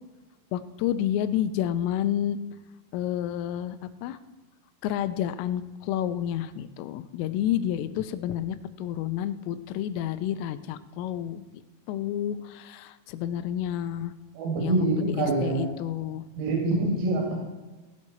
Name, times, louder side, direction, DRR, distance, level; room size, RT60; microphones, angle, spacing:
voice 1, 0.5-2.4 2.9-4.2 4.8-11.6 11.9-14.1 14.6-16.3, left 11 dB, 85° left, 11 dB, 3.2 m, -30 dB
voice 2, 14.4-15.7 16.4-17.4, right 2 dB, 85° right, -2 dB, 5.2 m, -25 dB
16.5 x 10.5 x 4.4 m, 1.2 s
omnidirectional pair, 6.0 m